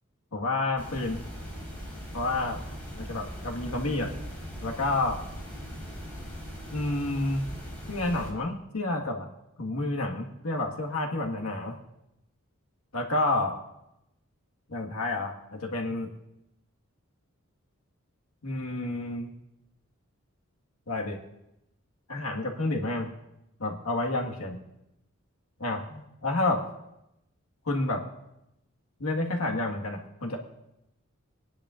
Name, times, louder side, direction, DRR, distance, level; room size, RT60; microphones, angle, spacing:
voice 1, 0.3-1.2 2.1-2.6 3.0-4.1 4.6-5.2 6.7-7.4 7.9-9.3 9.6-11.8 12.9-13.5 14.7-16.1 18.4-19.3 20.9-21.2 22.1-23.1 23.6-24.6 25.6-26.6 27.6-28.0 29.0-30.4, left 2 dB, 85° left, 1 dB, 1.6 m, -29 dB
sound 1, 0.8-8.3, equal, 10° left, 4.3 m, -40 dB
24.0 x 10.0 x 2.5 m, 0.87 s
head